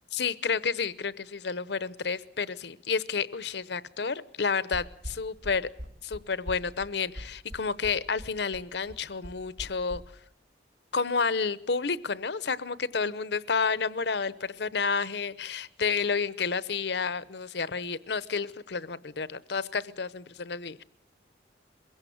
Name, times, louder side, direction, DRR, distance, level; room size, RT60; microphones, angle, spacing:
voice 1, 0.1-5.7 6.0-10.0 10.9-20.8, left 5 dB, 65° left, 18 dB, 0.8 m, -30 dB
sound 1, 4.7-10.0, equal, 60° right, 3.6 m, -41 dB
22.5 x 16.5 x 7.8 m, 0.77 s
head